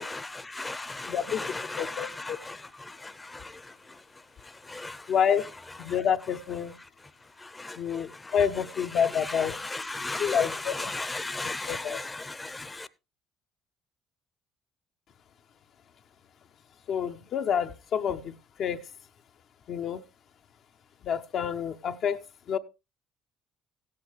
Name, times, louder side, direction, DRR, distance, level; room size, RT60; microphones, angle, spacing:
voice 1, 0.0-2.6 2.8-3.5 4.7-5.0 7.4-8.3 9.4-12.9, left 2 dB, 20° left, 0.7 m, -36 dB
voice 2, 1.1-2.4 5.1-5.4 5.8-6.8 7.8-9.5 10.2-10.9 11.4-12.0 16.9-18.8 19.7-20.0 21.0-22.2 22.5-22.6, left 8 dB, 60° left, 0.6 m, -28 dB
16.0 x 8.6 x 3.3 m
hypercardioid pair, 55°, 0 cm